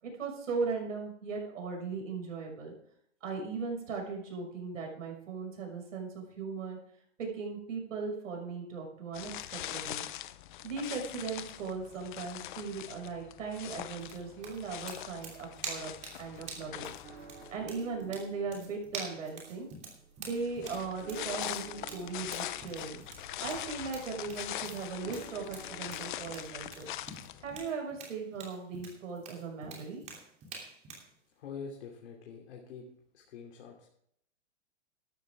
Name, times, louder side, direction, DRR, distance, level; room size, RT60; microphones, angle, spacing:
voice 1, 0.0-2.7 3.2-6.8 7.2-10.1 10.6-15.9 16.2-16.9 17.5-19.7 20.2-23.0 23.4-26.9 27.4-30.0, right 4 dB, 85° right, 1 dB, 6.1 m, -38 dB
sound 1, 9.1-17.8 20.3-27.7, left 13 dB, 40° left, 0.7 m, -42 dB
sound 2, 14.0-31.1, right 4 dB, 20° right, 3.0 m, -47 dB
sound 3, 17.0-26.6, right 6 dB, 65° right, 5.4 m, -54 dB
voice 2, 31.3-32.9 33.1-33.9, left 6 dB, 60° left, 0 dB, 3.0 m, -45 dB
14.5 x 12.0 x 3.6 m, 0.69 s
hypercardioid pair, 160°, 38 cm